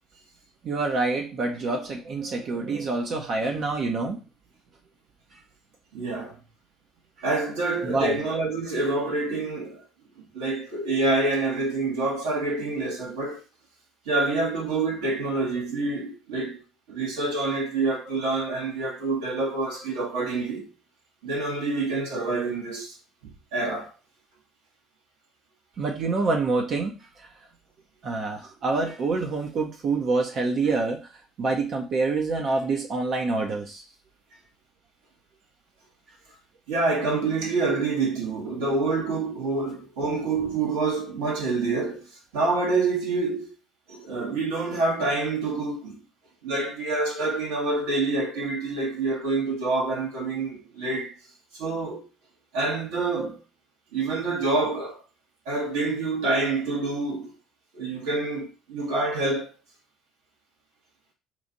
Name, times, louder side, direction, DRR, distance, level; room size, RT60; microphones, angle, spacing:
voice 1, 0.6-4.2 7.8-8.2 25.8-27.3 28.0-31.1 31.4-33.8, right 3 dB, 50° right, 0.7 m, -26 dB
voice 2, 5.9-6.4 7.2-9.8 10.3-13.4 14.0-16.6 16.9-20.7 21.2-22.9 23.2-23.9 36.7-42.1 42.3-43.5 43.9-46.0 46.4-51.2 51.5-52.0 52.5-53.4 53.9-55.0 55.4-57.3 57.7-59.5, right 3 dB, 75° right, 1.4 m, -27 dB
3.0 x 2.4 x 3.9 m
hypercardioid pair, 60°, 0 cm